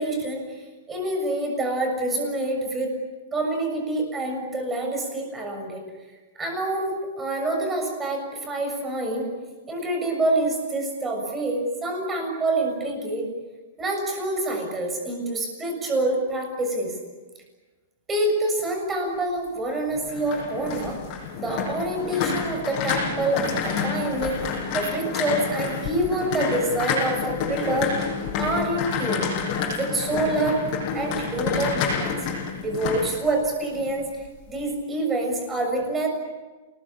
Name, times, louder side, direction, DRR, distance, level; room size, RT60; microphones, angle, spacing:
voice 1, 0.0-2.9 3.3-5.8 6.3-9.3 9.7-13.3 13.8-17.0 18.1-21.0 21.4-24.4 24.7-27.9 28.4-29.4 29.7-32.3 32.6-34.1 34.5-36.1, right 2 dB, 10° right, 3 dB, 6.8 m, -26 dB
sound 1, 19.9-33.9 34.2-34.6, left 6 dB, 30° left, 7.9 m, -29 dB
29.5 x 21.5 x 8.6 m, 1.3 s
supercardioid pair, 170°, 0 cm